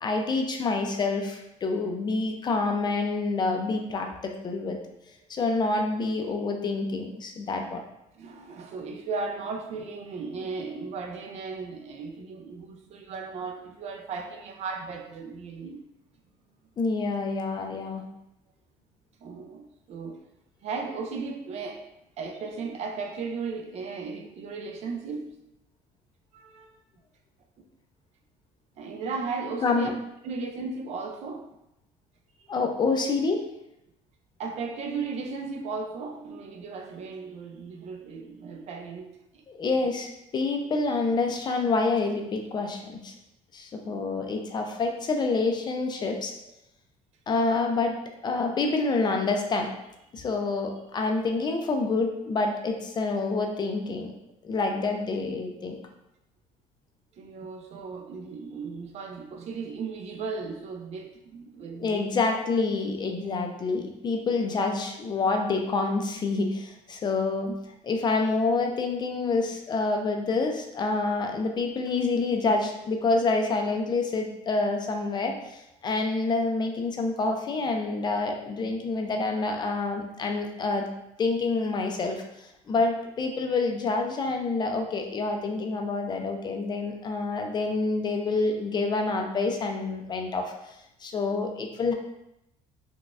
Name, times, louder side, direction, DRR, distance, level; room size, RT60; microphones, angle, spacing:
voice 1, 0.0-4.8 5.3-7.8 16.8-18.1 29.6-30.0 32.5-33.4 39.5-40.1 40.3-43.1 43.5-46.3 47.3-48.0 48.2-49.7 50.1-54.1 54.4-55.8 61.8-67.5 67.8-80.9 81.2-90.4 91.0-91.9, left 3 dB, 30° left, 3 dB, 0.4 m, -27 dB
voice 2, 8.2-15.8 19.2-20.2 20.6-25.3 26.3-26.8 28.8-29.9 30.2-31.5 32.4-32.5 34.4-39.1 39.3-39.4 39.8-39.9 43.8-44.0 46.0-46.1 57.1-62.4, right 4 dB, 50° right, 4 dB, 0.5 m, -36 dB
3.9 x 2.2 x 2.4 m, 0.84 s
cardioid pair, 120°, 14 cm